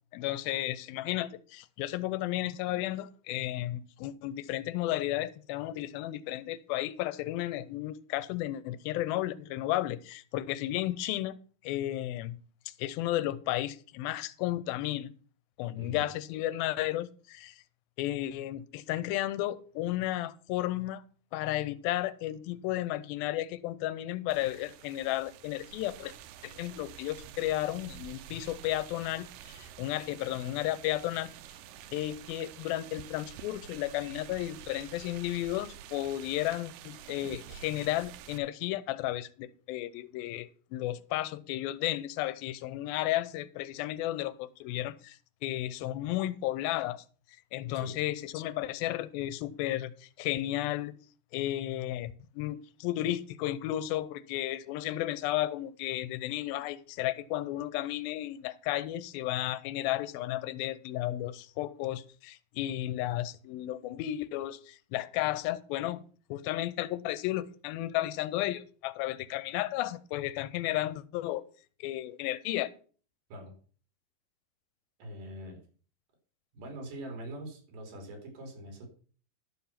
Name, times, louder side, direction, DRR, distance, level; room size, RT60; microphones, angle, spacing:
voice 1, 0.1-11.4 11.6-12.4 12.7-15.1 15.6-17.6 18.0-21.0 21.3-26.1 26.4-31.3 31.9-47.0 47.5-50.9 51.3-66.0 66.3-71.4 71.8-72.7, left 14 dB, 85° left, 2.4 m, -33 dB
voice 2, 15.8-16.1 47.7-47.9 73.3-73.5 75.0-75.6 76.5-78.9, right 1 dB, 65° right, 4.4 m, -43 dB
sound 1, 24.3-38.4, right 10 dB, 80° right, 2.1 m, -48 dB
11.5 x 5.9 x 5.7 m
omnidirectional pair, 4.2 m